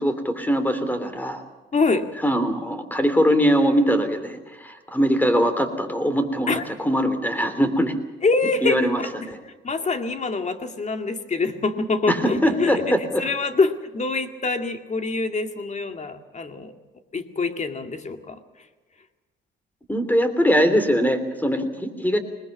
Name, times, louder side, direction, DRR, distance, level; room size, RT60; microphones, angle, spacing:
voice 1, 0.0-1.4 2.2-7.9 8.6-9.0 9.3-9.4 12.1-13.2 19.9-22.2, equal, 10° left, 10 dB, 3.2 m, -22 dB
voice 2, 1.7-2.1 6.5-6.6 8.2-9.1 9.5-16.7 17.1-18.7, left 3 dB, 35° left, 7 dB, 2.2 m, -25 dB
21.0 x 20.0 x 7.2 m, 1.3 s
cardioid pair, 90°, 20 cm